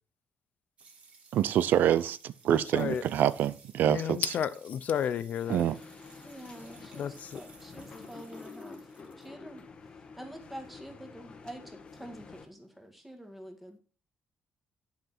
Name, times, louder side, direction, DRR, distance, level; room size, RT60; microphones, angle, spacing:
sound 1, 0.8-9.3, right 4 dB, 40° right, 2.5 m, -58 dB
voice 1, 1.3-4.3 5.5-5.8, right 10 dB, 70° right, 16 dB, 0.5 m, -26 dB
voice 2, 2.5-3.0 3.8-5.6 7.0-7.4, left 8 dB, 50° left, 15 dB, 0.5 m, -32 dB
sound 2, 5.4-12.5, left 4 dB, 30° left, 1.2 m, -49 dB
voice 3, 6.2-8.9 9.2-9.6 10.0-13.8, right 1 dB, 5° right, 4 dB, 1.8 m, -47 dB
10.5 x 5.8 x 5.9 m, 0.37 s
cardioid pair, 175°, 3 cm